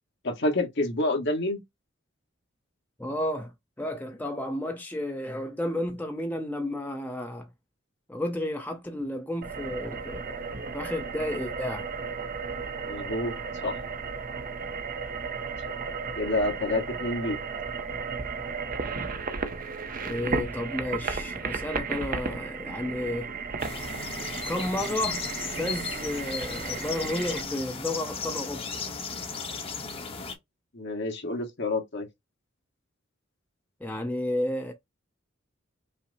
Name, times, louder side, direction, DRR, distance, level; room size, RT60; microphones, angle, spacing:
voice 1, 0.2-1.6 12.9-13.3 13.6-13.7 15.7-15.8 16.2-17.4 30.7-32.1, left 2 dB, 60° left, 1.3 m, -28 dB
voice 2, 3.0-3.5 3.8-7.5 8.1-10.4 10.7-11.9 20.0-23.3 24.5-25.3 25.5-28.7 33.8-34.7, left 1 dB, 10° left, 0.6 m, -32 dB
sound 1, 9.4-27.4, right 5 dB, 40° right, 0.6 m, -34 dB
sound 2, 23.6-30.4, left 5 dB, 30° left, 0.9 m, -35 dB
5.6 x 2.0 x 4.0 m
head